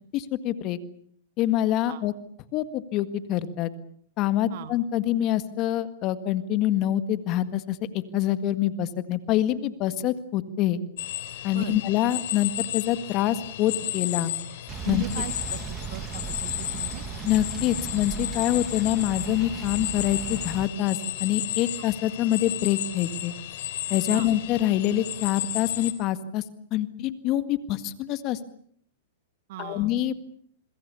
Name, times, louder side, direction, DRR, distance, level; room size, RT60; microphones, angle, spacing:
voice 1, 0.1-0.8 1.4-2.1 2.5-3.7 4.2-7.8 8.1-10.8 11.4-14.3 14.9-15.0 17.2-23.3 23.9-26.4 26.7-28.4 29.6-30.1, left 12 dB, 40° left, 12 dB, 1.8 m, -25 dB
sound 1, 11.0-25.9, left 13 dB, 65° left, 3.5 m, -33 dB
sound 2, 14.7-20.7, right 8 dB, 25° right, 1.7 m, -37 dB
voice 2, 14.8-17.0 21.8-21.9 24.1-24.3 29.5-29.9, right 12 dB, 60° right, 11 dB, 2.0 m, -38 dB
27.0 x 22.0 x 7.1 m, 0.64 s
hypercardioid pair, 125°, 0 cm